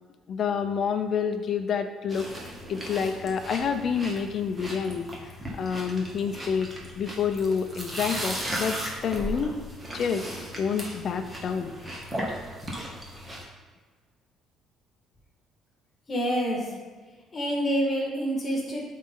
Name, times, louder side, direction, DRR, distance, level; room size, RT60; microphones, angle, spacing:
voice 1, 0.3-2.3 2.7-5.3 5.6-9.6 9.9-10.2 10.6-11.7, left 6 dB, 45° left, 7 dB, 0.6 m, -28 dB
sound 1, 2.1-13.4, right 1 dB, 15° right, 1.4 m, -36 dB
voice 2, 16.1-16.7 17.3-18.8, equal, 25° left, -2 dB, 2.0 m, -27 dB
12.0 x 4.1 x 3.9 m, 1.4 s
cardioid pair, 155°, 0 cm